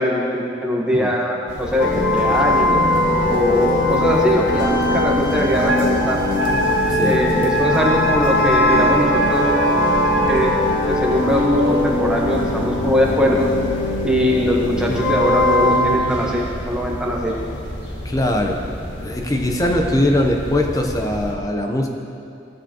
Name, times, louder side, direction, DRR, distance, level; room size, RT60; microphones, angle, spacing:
voice 1, 0.0-2.8 3.3-6.2 7.0-9.5 10.3-10.5 10.9-13.4 14.0-17.3, equal, 5° right, -3 dB, 1.0 m, -21 dB
sound 1, 1.5-21.4, equal, 65° left, 1.4 m, -32 dB
sound 2, 1.8-16.0, left 2 dB, 85° left, 1.6 m, -20 dB
Wind instrument woodwind instrument, 5.7-10.4, right 2 dB, 75° right, 0.7 m, -23 dB
voice 2, 6.9-7.2 14.9-15.1 18.0-18.6 19.0-21.9, left 1 dB, 20° left, 2 dB, 0.7 m, -21 dB
15.5 x 6.8 x 2.9 m, 2.5 s
head